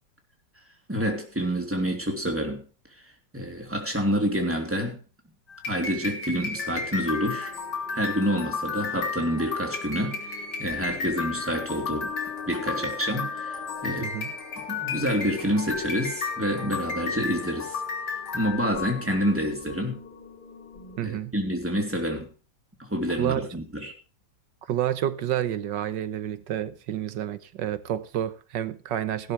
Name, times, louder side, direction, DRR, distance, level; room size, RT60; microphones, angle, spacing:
voice 1, 0.9-2.6 3.3-5.0 5.7-7.5 7.9-12.1 12.5-14.1 14.7-17.8 18.3-20.0 21.0-22.3 22.8-23.9, equal, 5° right, 3.2 m, -28 dB
sound 1, 5.5-18.7, left 5 dB, 60° left, 3.9 m, -33 dB
sound 2, 6.5-21.0, left 6 dB, 80° left, 7.0 m, -44 dB
voice 2, 14.0-14.3 21.0-21.3 23.2-23.5 24.7-29.3, right 11 dB, 75° right, 1.5 m, -29 dB
16.0 x 12.5 x 3.3 m
omnidirectional pair, 2.0 m